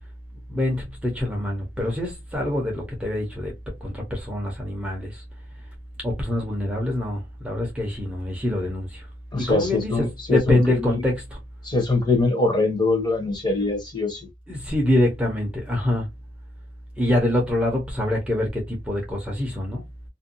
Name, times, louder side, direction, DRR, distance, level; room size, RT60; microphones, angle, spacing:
voice 1, 0.5-3.5 3.8-5.2 6.0-9.0 9.4-10.1 10.3-11.2 14.5-16.0 17.0-19.8, left 1 dB, 5° right, 0.6 m, -25 dB
voice 2, 9.3-11.0 11.6-14.3, left 3 dB, 20° left, 0.8 m, -23 dB
2.5 x 2.2 x 2.6 m
head